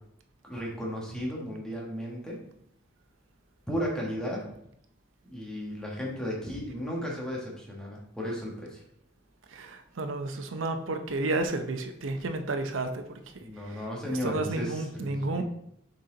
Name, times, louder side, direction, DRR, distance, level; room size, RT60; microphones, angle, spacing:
voice 1, 0.4-2.4 3.7-4.5 5.2-8.8 13.4-15.4, equal, 5° left, -3 dB, 1.5 m, -34 dB
voice 2, 9.5-13.2 13.7-13.8 14.2-15.4, right 2 dB, 85° right, 6 dB, 0.7 m, -31 dB
6.7 x 4.3 x 3.9 m, 0.73 s
head